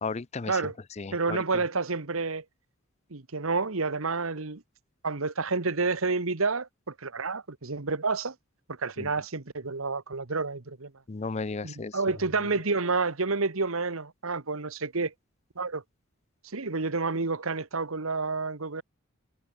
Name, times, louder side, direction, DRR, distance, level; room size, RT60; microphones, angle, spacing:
voice 1, 0.0-0.6 1.0-1.4 9.0-9.1 11.1-12.0, left 4 dB, 30° left, 0.5 m, -34 dB
voice 2, 1.1-2.4 3.1-4.6 5.0-8.3 8.7-10.9 11.6-15.1 15.5-15.8 16.4-18.8, right 4 dB, 75° right, 1.4 m, -29 dB
head